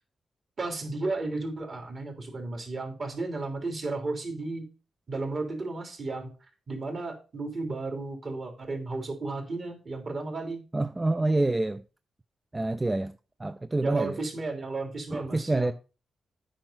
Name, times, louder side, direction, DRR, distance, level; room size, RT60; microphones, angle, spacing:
voice 1, 0.6-4.7 5.1-6.3 6.7-10.6 13.8-15.7, right 3 dB, 45° right, 3.2 m, -33 dB
voice 2, 10.7-11.8 12.5-13.1 13.4-14.2 15.1-15.7, right 2 dB, 20° right, 0.4 m, -27 dB
8.9 x 5.3 x 5.7 m
cardioid pair, 90°, 0 cm